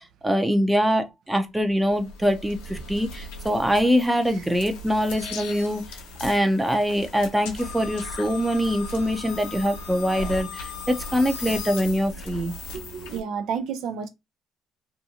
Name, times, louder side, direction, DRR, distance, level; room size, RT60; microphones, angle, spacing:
voice 1, 0.0-5.8 6.2-12.5, equal, 10° right, 0.6 m, -24 dB
sound 1, 1.6-13.2, left 3 dB, 90° left, 0.8 m, -38 dB
voice 2, 12.7-14.1, right 6 dB, 70° right, 0.5 m, -30 dB
2.5 x 2.3 x 2.8 m
supercardioid pair, 65°, 0 cm